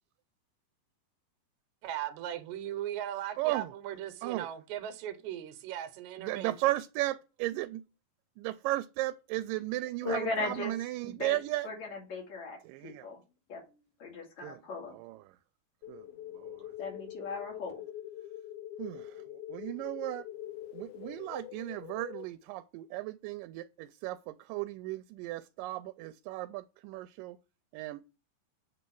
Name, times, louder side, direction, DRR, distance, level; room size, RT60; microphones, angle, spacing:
voice 1, 1.8-6.5, right 11 dB, 70° right, 2.2 m, -38 dB
voice 2, 3.4-3.7 4.2-4.5 6.2-7.8 8.4-11.7 12.6-13.1 14.4-14.6 14.9-15.4 15.9-16.8 18.8-20.3 20.7-27.4 27.7-28.0, right 17 dB, 85° right, 2.2 m, -35 dB
voice 3, 10.0-10.7 11.0-11.4 11.6-12.6 12.8-13.2 13.5-13.6 14.0-14.9 16.8-17.8, left 3 dB, 55° left, 4.1 m, -37 dB
sound 1, 15.8-22.3, left 12 dB, 80° left, 1.8 m, -44 dB
8.1 x 4.1 x 6.9 m
omnidirectional pair, 3.8 m